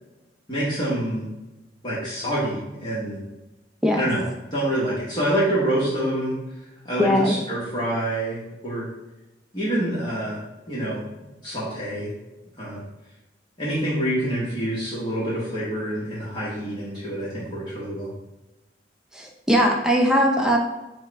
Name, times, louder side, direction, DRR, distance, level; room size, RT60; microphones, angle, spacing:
voice 1, 0.5-1.3 1.8-3.2 4.0-4.2 4.5-6.4 6.8-8.4 8.6-8.9 9.5-10.4 10.7-11.0 11.4-12.1 12.6-12.8 13.6-18.1, right 1 dB, 25° left, -8 dB, 1.1 m, -26 dB
voice 2, 7.0-7.4 19.1-20.6, equal, 5° right, 0 dB, 0.5 m, -20 dB
4.5 x 2.2 x 4.6 m, 1.0 s
head